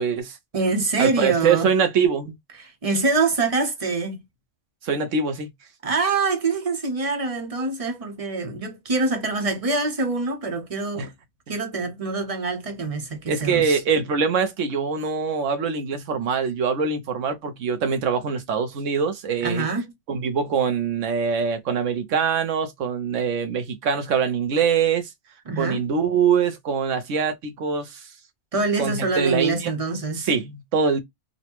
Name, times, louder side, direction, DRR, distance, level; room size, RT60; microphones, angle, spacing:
voice 1, 0.0-0.4 1.0-2.4 4.8-5.5 10.9-11.1 13.3-19.7 20.1-25.1 25.6-28.0 28.8-29.7 30.2-31.0, right 6 dB, 85° right, 1.2 m, -23 dB
voice 2, 0.5-1.7 2.6-4.2 5.8-11.1 11.5-13.8 19.4-19.9 25.5-25.8 28.5-30.3, right 3 dB, 35° right, 0.8 m, -25 dB
3.8 x 2.2 x 2.9 m
omnidirectional pair, 1.3 m